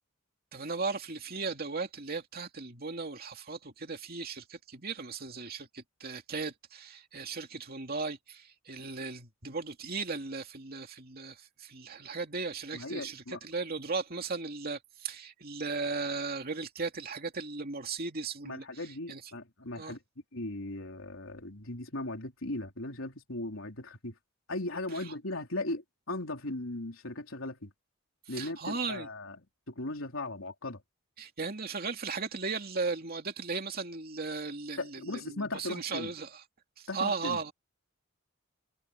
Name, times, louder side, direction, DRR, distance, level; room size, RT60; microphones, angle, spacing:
voice 1, 0.5-19.2 19.8-20.0 24.9-25.1 28.3-29.1 31.2-36.3 36.8-37.5, right 4 dB, 45° right, 2.7 m, -37 dB
voice 2, 12.7-13.4 18.4-20.0 20.3-24.2 24.5-27.7 28.3-29.4 29.7-30.8 34.8-36.1 36.9-37.4, left 2 dB, 75° left, 3.9 m, -38 dB
head